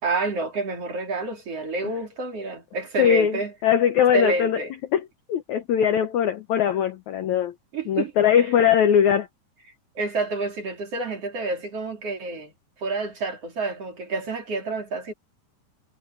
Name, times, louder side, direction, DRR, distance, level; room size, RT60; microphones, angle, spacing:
voice 1, 0.0-3.5 4.1-4.7 7.7-8.5 10.0-12.5 12.8-15.1, right 3 dB, 35° right, 4.0 m, -29 dB
voice 2, 3.0-4.6 4.9-5.0 5.3-7.5 7.9-9.3, left 9 dB, 80° left, 1.6 m, -20 dB
omnidirectional pair, 4.8 m